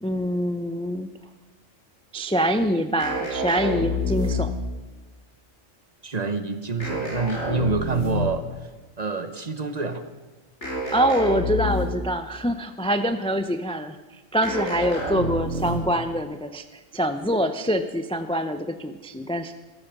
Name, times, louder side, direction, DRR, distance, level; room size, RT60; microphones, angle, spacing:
voice 1, 0.0-1.1 2.1-4.5 10.9-14.0 14.3-16.6 16.9-19.5, equal, 10° left, 9 dB, 0.3 m, -25 dB
sound 1, 3.0-4.8 6.8-8.5 10.6-12.1 14.4-16.0, left 1 dB, 60° left, 5.6 m, -28 dB
voice 2, 6.0-8.4 9.0-10.1, right 4 dB, 35° right, 9 dB, 1.0 m, -27 dB
14.5 x 13.5 x 6.0 m, 1.2 s
omnidirectional pair, 1.3 m